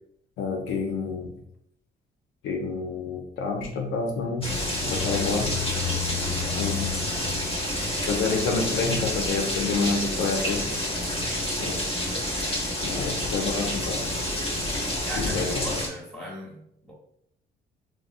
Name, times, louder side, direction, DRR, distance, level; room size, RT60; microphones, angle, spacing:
voice 1, 0.4-1.3 2.4-4.5 4.8-5.6 6.5-7.0 8.1-10.7 11.6-11.8 12.8-14.1 15.2-15.7, left 4 dB, 90° left, 1 dB, 0.6 m, -28 dB
sound 1, 4.4-15.9, left 1 dB, 30° left, 0.9 m, -28 dB
voice 2, 5.7-6.0 15.0-16.9, equal, 5° left, -5 dB, 1.1 m, -38 dB
3.5 x 2.1 x 2.5 m, 0.72 s
cardioid pair, 90°, 20 cm